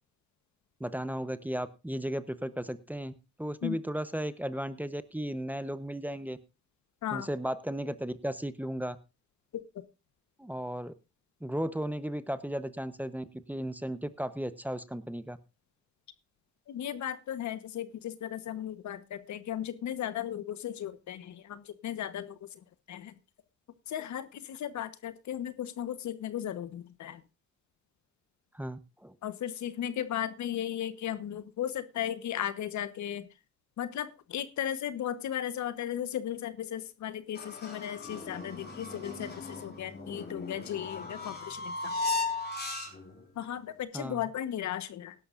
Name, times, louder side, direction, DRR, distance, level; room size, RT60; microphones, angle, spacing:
voice 1, 0.8-3.1 3.4-6.4 7.1-9.0 10.4-10.9 11.4-15.4 28.5-29.1 43.9-44.2, right 1 dB, 5° right, 13 dB, 0.9 m, -35 dB
voice 2, 16.7-22.6 22.9-23.1 23.9-27.2 29.2-33.3 33.8-42.0 43.3-45.1, left 10 dB, 70° left, 13 dB, 1.2 m, -36 dB
sound 1, 37.4-43.2, left 3 dB, 35° left, 4.6 m, -37 dB
17.5 x 11.5 x 2.6 m, 0.28 s
cardioid pair, 90°, 30 cm